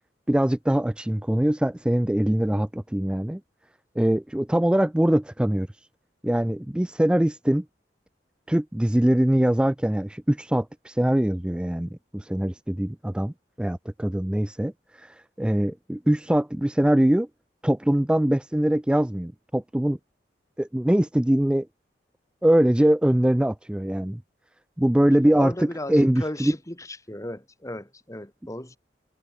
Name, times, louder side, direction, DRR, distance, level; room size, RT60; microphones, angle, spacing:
voice 1, 0.3-3.4 4.0-5.7 6.2-7.6 8.5-17.3 17.6-20.0 20.6-21.7 22.4-24.2 24.8-25.5 25.9-26.5, right 1 dB, 5° right, 0.3 m, -22 dB
voice 2, 25.2-28.8, left 1 dB, 20° left, 2.7 m, -35 dB
head